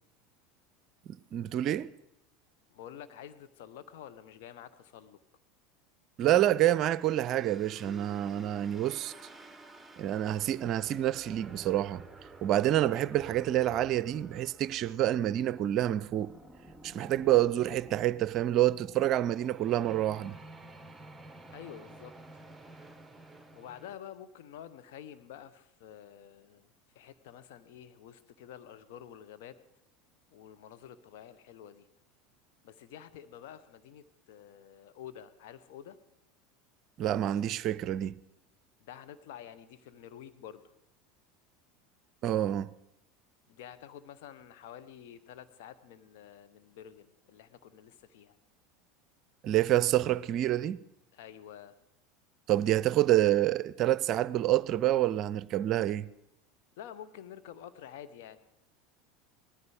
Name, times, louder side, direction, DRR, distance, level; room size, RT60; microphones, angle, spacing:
voice 1, 1.1-1.9 6.2-9.1 10.0-12.0 12.4-16.3 16.8-20.4 37.0-38.2 42.2-42.7 49.4-50.8 52.5-56.1, right 13 dB, 45° right, 0.5 m, -27 dB
voice 2, 2.7-5.2 21.5-22.2 23.5-26.7 26.9-29.6 30.3-31.9 32.6-36.0 38.8-40.6 43.5-48.4 51.1-51.7 56.8-58.4, left 10 dB, 65° left, 1.0 m, -49 dB
sound 1, 7.0-24.0, right 2 dB, 10° right, 1.1 m, -52 dB
19.0 x 14.0 x 5.0 m
figure-of-eight pair, 75°, 0 cm